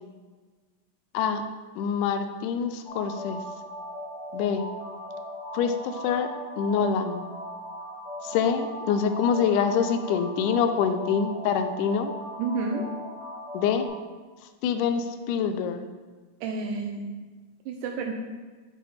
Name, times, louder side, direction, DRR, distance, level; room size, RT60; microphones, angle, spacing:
voice 1, 1.8-3.4 4.3-4.6 5.5-6.3 6.6-7.2 8.2-12.1 13.5-13.9 14.6-15.9, left 7 dB, 80° left, 8 dB, 2.0 m, -25 dB
sound 1, 2.9-13.9, equal, 45° left, 1.3 m, -38 dB
voice 2, 12.4-12.9 16.4-17.1 17.7-18.1, right 4 dB, 80° right, 2 dB, 2.0 m, -30 dB
6.9 x 5.0 x 4.1 m, 1.4 s
omnidirectional pair, 3.8 m